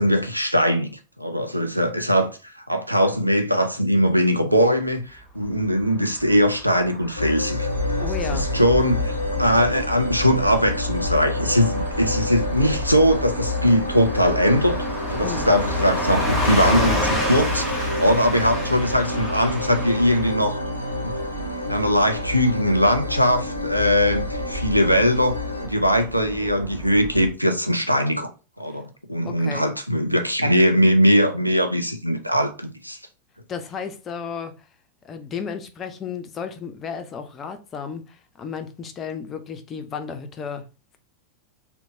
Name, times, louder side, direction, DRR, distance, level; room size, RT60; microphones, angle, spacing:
voice 1, 0.0-7.7 8.3-14.8 15.1-20.6 21.0-28.3 28.6-33.0, equal, 90° right, 0.4 m, -21 dB
Car passing by / Truck, 6.0-20.3, equal, ahead, 1.1 m, -31 dB
sound 1, 7.2-25.7, left 2 dB, 85° left, 0.4 m, -28 dB
sound 2, 7.7-27.3, right 4 dB, 35° right, 1.1 m, -36 dB
voice 2, 8.0-8.5 15.2-15.5 28.7-28.8 29.3-29.6 33.5-34.7 35.0-40.7, left 6 dB, 25° left, 0.4 m, -33 dB
2.9 x 2.1 x 2.7 m
figure-of-eight pair, 90°, 0 cm